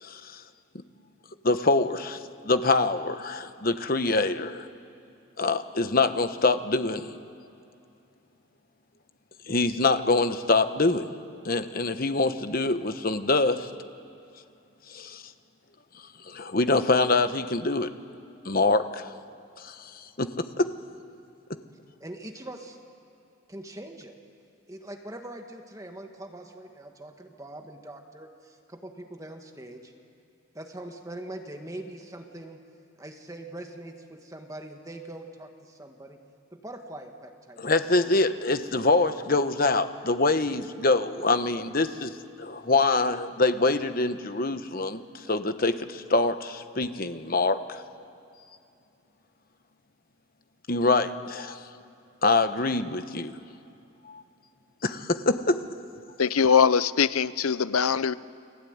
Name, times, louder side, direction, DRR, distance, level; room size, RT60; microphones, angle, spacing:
voice 1, 0.0-0.4 1.4-4.7 5.4-7.2 9.5-11.1 11.4-13.7 14.9-15.2 16.3-17.9 18.4-19.1 19.6-20.7 37.6-42.1 42.4-47.8 50.7-51.6 52.2-53.4 54.0-54.2 54.8-55.6, left 3 dB, 45° left, 9 dB, 1.2 m, -25 dB
voice 2, 22.0-22.8 23.5-24.1 24.7-29.9 30.5-32.6 33.0-36.2 36.5-37.6, right 1 dB, 15° right, 4 dB, 1.7 m, -42 dB
voice 3, 56.2-58.1, left 6 dB, 90° left, 16 dB, 0.7 m, -22 dB
30.0 x 21.0 x 9.6 m, 2.6 s
head